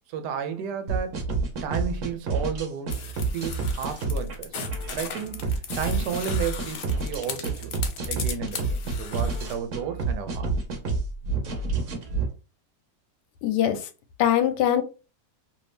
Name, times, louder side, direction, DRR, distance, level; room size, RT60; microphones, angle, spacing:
voice 1, 0.1-1.2 1.6-3.0 3.3-4.6 4.9-7.8 8.1-10.5, right 7 dB, 85° right, 1.2 m, -32 dB
sound 1, 0.9-12.3, right 3 dB, 55° right, 1.0 m, -29 dB
sound 2, 2.9-9.6, left 7 dB, 65° left, 0.9 m, -37 dB
voice 2, 13.4-13.9 14.2-14.8, left 10 dB, 85° left, 1.2 m, -22 dB
2.8 x 2.7 x 3.3 m
omnidirectional pair, 1.8 m